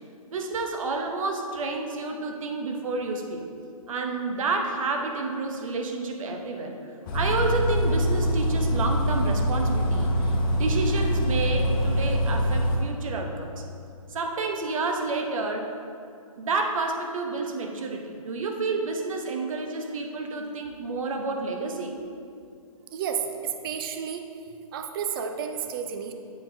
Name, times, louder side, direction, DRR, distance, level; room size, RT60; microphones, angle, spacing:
voice 1, 0.3-3.5 3.9-6.8 7.1-13.6 14.1-15.8 16.4-22.0, right 3 dB, 65° right, 3 dB, 0.8 m, -30 dB
Bus, 7.1-12.8, equal, 35° left, 0.9 m, -24 dB
voice 2, 22.9-24.3 24.7-26.1, right 7 dB, 40° right, 6 dB, 0.4 m, -31 dB
8.9 x 4.4 x 2.6 m, 2.5 s
hypercardioid pair, 140°, 19 cm